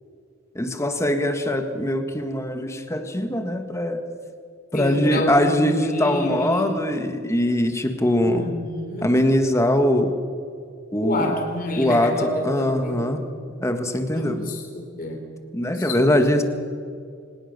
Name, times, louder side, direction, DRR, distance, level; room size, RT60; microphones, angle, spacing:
voice 1, 0.5-4.0 4.7-8.5 9.0-10.2 10.9-11.4 11.8-13.2 13.6-14.4 15.5-16.4, left 1 dB, 15° left, 6 dB, 1.6 m, -22 dB
voice 2, 4.7-6.8 8.2-9.1 11.0-13.0 14.1-15.2 15.7-16.1, left 1 dB, 45° left, 2 dB, 3.7 m, -28 dB
24.0 x 20.0 x 6.8 m, 2.3 s
head